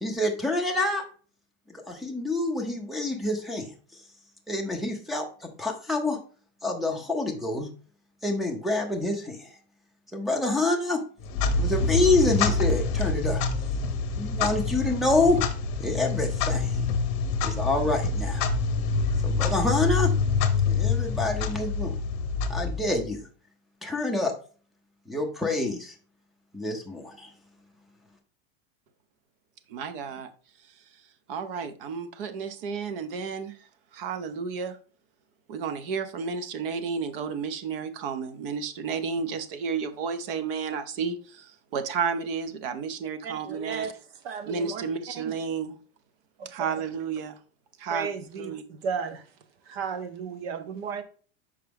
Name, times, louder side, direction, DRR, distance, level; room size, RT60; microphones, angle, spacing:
voice 1, 0.0-1.0 1.9-3.7 4.5-6.2 6.6-7.7 8.2-9.5 10.1-11.0 11.6-13.4 14.2-15.4 15.8-16.9 17.4-18.5 19.2-20.1 20.7-21.9 22.5-23.2 23.8-24.3 25.1-25.9 26.5-27.3, left 2 dB, ahead, 0.4 m, -27 dB
Clock, 11.2-23.2, left 4 dB, 35° left, 0.7 m, -26 dB
voice 2, 29.7-30.3 31.3-33.5 33.9-34.8 35.5-43.9 44.5-45.8 46.5-47.4 47.8-48.1 48.4-48.6, right 5 dB, 65° right, 0.9 m, -32 dB
voice 3, 43.2-43.9 44.2-44.8 45.1-45.3 46.4-46.8 47.9-49.2 49.7-51.0, right 6 dB, 85° right, 1.0 m, -34 dB
5.7 x 5.1 x 3.4 m
supercardioid pair, 180°, 30 cm